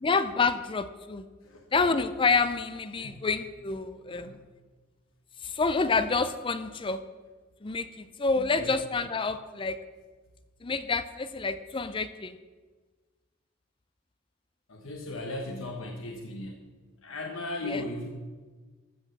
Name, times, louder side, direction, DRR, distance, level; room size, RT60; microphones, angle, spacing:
voice 1, 0.0-1.3 1.7-4.3 5.4-7.0 7.6-9.8 10.6-12.4 17.7-17.8, left 4 dB, 25° left, 12 dB, 0.5 m, -28 dB
voice 2, 4.1-4.4 8.4-8.7 14.7-16.6 17.0-18.1, left 2 dB, 75° left, 1 dB, 1.3 m, -37 dB
14.0 x 6.2 x 6.8 m, 1.4 s
head